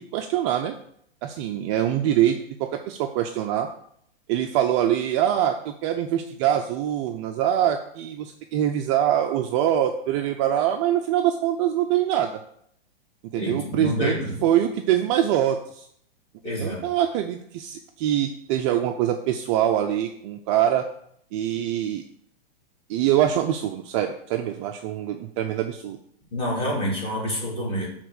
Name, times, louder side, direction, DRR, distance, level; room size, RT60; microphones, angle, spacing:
voice 1, 0.1-0.7 1.2-3.7 4.3-12.3 13.3-14.2 14.4-15.9 16.6-20.8 21.3-22.0 22.9-26.0, right 11 dB, 30° right, 5 dB, 0.5 m, -24 dB
voice 2, 13.3-14.5 16.4-16.9 26.3-27.9, equal, 20° left, -4 dB, 3.0 m, -27 dB
6.7 x 3.6 x 6.3 m, 0.69 s
hypercardioid pair, 135°, 30 cm